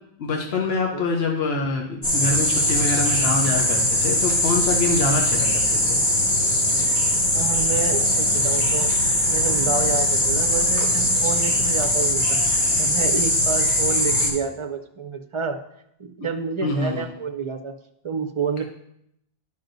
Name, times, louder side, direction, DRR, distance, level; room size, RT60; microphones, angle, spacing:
voice 1, 0.2-6.0 16.6-17.1, left 3 dB, 80° left, 1 dB, 1.1 m, -25 dB
sound 1, 2.0-14.3, left 1 dB, 45° left, 1.6 m, -21 dB
voice 2, 7.3-8.9 9.3-12.4 12.8-15.6 16.0-17.7 18.0-18.6, right 5 dB, 40° right, 4 dB, 0.5 m, -29 dB
10.5 x 5.6 x 2.6 m, 0.75 s
omnidirectional pair, 1.0 m